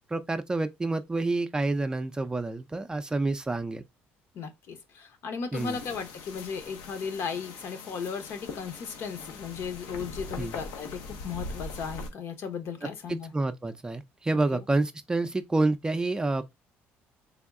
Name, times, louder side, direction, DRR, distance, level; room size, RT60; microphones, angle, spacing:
voice 1, 0.1-3.8 5.5-5.8 10.4-10.6 13.1-16.5, right 2 dB, 15° right, 0.4 m, -28 dB
voice 2, 4.3-13.3 14.5-14.7, left 6 dB, 65° left, 0.9 m, -36 dB
sound 1, 5.5-12.1, left 3 dB, 90° left, 0.7 m, -41 dB
3.4 x 2.2 x 3.6 m
cardioid pair, 90°, 5 cm